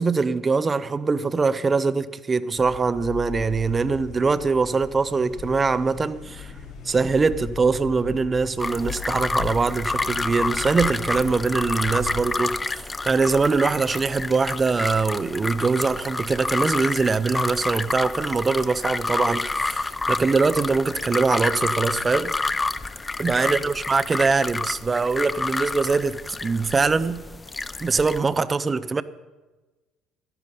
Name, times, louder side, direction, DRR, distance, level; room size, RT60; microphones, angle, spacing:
voice 1, 0.0-6.5 6.8-22.3 23.2-27.2 27.8-29.0, right 4 dB, 30° right, 0.7 m, -23 dB
sound 1, 2.6-12.3, left 7 dB, 55° left, 2.9 m, -38 dB
sound 2, 8.6-28.2, left 3 dB, 20° left, 0.6 m, -29 dB
13.0 x 11.0 x 5.4 m
hypercardioid pair, 70°, 0 cm